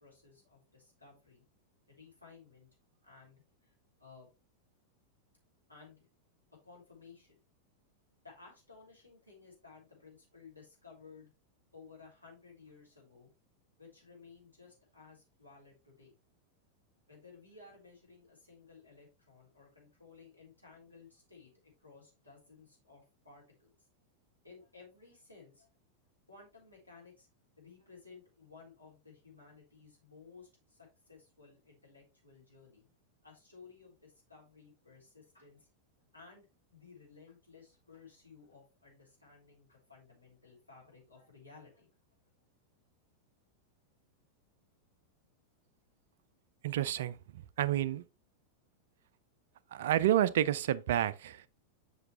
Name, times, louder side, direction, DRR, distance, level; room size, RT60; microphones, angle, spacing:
voice 1, 0.0-1.4 1.9-2.7 3.0-4.3 5.7-6.1 6.6-7.4 8.2-11.3 11.7-13.3 13.8-16.1 17.1-23.7 24.4-25.7 26.3-27.3 27.6-32.9 33.2-35.7 36.1-41.9, left 4 dB, 85° left, 3.5 m, -57 dB
voice 2, 46.6-48.0 49.7-51.5, right 12 dB, 55° right, 0.4 m, -30 dB
7.8 x 5.6 x 3.1 m
figure-of-eight pair, 90°, 0 cm